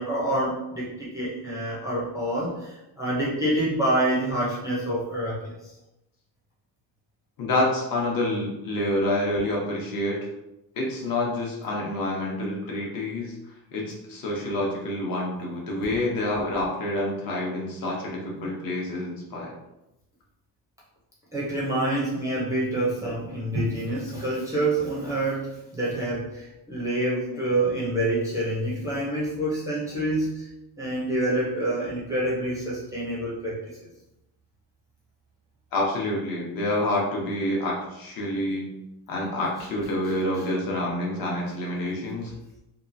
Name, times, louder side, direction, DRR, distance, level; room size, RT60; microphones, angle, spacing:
voice 1, 0.0-5.5 21.3-30.4 30.8-33.6, right 1 dB, 10° right, -8 dB, 0.4 m, -27 dB
voice 2, 7.4-10.3 10.8-13.3 13.7-19.5 22.2-22.3 27.3-27.4 35.7-38.7 39.1-42.3, left 1 dB, 55° left, -2 dB, 0.8 m, -28 dB
2.8 x 2.3 x 2.5 m, 0.89 s
cardioid pair, 175°, 42 cm